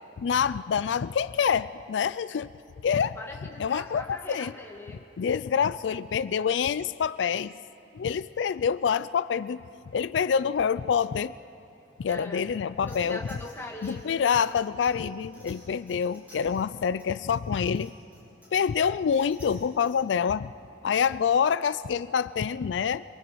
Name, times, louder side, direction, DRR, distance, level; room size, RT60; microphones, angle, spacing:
voice 1, 0.2-2.5 2.8-3.2 3.6-4.5 5.2-7.5 7.9-9.6 9.9-11.3 12.0-13.2 13.8-17.9 18.5-20.5 20.8-23.0, left 7 dB, 90° left, 16 dB, 0.4 m, -26 dB
voice 2, 3.2-5.0 12.1-12.4 12.8-14.2, left 1 dB, 15° left, -1 dB, 2.0 m, -41 dB
sound 1, 12.9-20.1, left 1 dB, 10° right, 6.5 m, -55 dB
26.5 x 23.5 x 4.7 m, 2.9 s
head